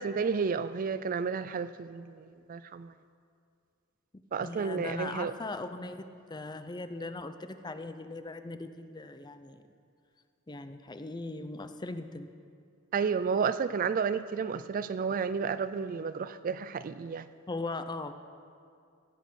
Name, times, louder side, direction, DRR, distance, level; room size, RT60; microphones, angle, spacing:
voice 1, 0.0-2.9 4.3-5.3 12.9-17.3, right 5 dB, 40° right, 13 dB, 0.3 m, -31 dB
voice 2, 4.1-9.6 10.5-12.3 17.5-18.1, left 2 dB, 20° left, 9 dB, 0.5 m, -39 dB
15.5 x 8.2 x 6.4 m, 2.3 s
head